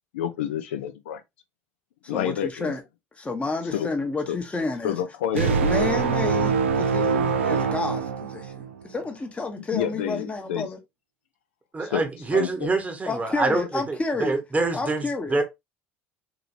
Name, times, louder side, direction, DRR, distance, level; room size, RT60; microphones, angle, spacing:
voice 1, 0.1-1.2 2.1-2.7 3.7-3.9 4.3-4.4 4.8-5.4 9.7-10.7 11.8-12.0 12.3-12.7, left 10 dB, 75° left, 0.5 m, -28 dB
voice 2, 2.1-2.8 3.2-5.0 5.3-10.8 13.1-14.4 14.7-15.4, left 3 dB, 20° left, 0.9 m, -30 dB
sound 1, 5.4-8.8, right 5 dB, 85° right, 0.4 m, -24 dB
voice 3, 11.7-15.0 15.3-15.4, right 3 dB, 20° right, 1.0 m, -25 dB
3.0 x 2.9 x 2.5 m
hypercardioid pair, 60°, 6 cm